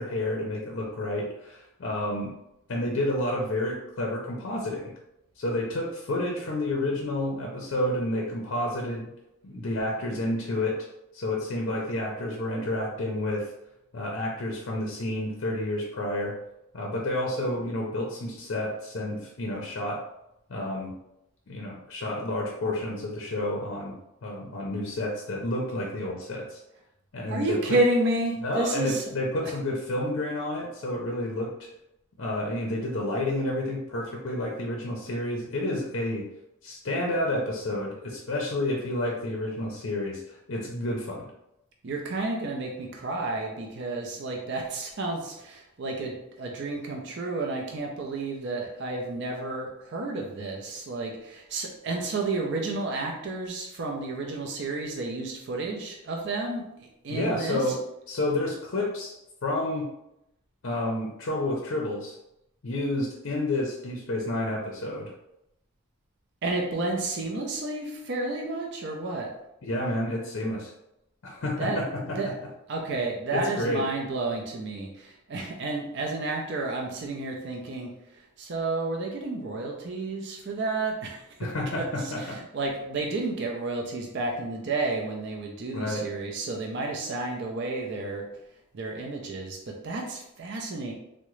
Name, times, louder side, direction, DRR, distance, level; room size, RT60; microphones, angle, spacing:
voice 1, 0.0-2.3 2.7-4.9 5.4-9.1 9.4-10.8 11.1-13.5 13.9-16.3 16.7-20.0 20.5-20.9 21.5-23.9 24.2-26.6 27.1-27.6 28.4-31.7 32.2-36.3 36.6-41.3 57.1-57.8 58.1-59.1 59.4-59.9 60.6-62.2 62.6-65.1 69.6-70.7 71.2-72.2 73.3-73.8 81.4-82.4 85.7-86.0, left 1 dB, 60° left, -1 dB, 0.5 m, -30 dB
voice 2, 27.3-29.1 29.4-29.5 41.8-57.8 66.4-69.3 71.6-72.4 72.7-77.9 78.2-88.3 88.7-90.9, right 2 dB, 55° right, 1 dB, 0.5 m, -31 dB
3.6 x 2.1 x 3.0 m, 0.84 s
head